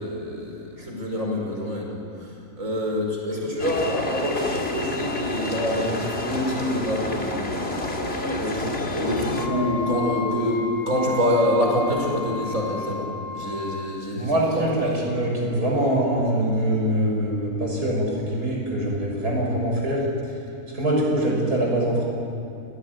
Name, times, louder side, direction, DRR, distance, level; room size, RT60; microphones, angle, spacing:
voice 1, 0.0-7.6 8.4-15.1, left 1 dB, 55° right, 0 dB, 6.0 m, -26 dB
sound 1, 3.6-9.5, left 2 dB, 40° left, 2.6 m, -29 dB
Wind instrument woodwind instrument, 9.3-13.9, left 2 dB, 85° left, 4.8 m, -33 dB
voice 2, 14.1-20.0 20.7-22.0, right 1 dB, 90° right, -2 dB, 7.2 m, -23 dB
29.0 x 18.5 x 9.5 m, 2.6 s
omnidirectional pair, 1.6 m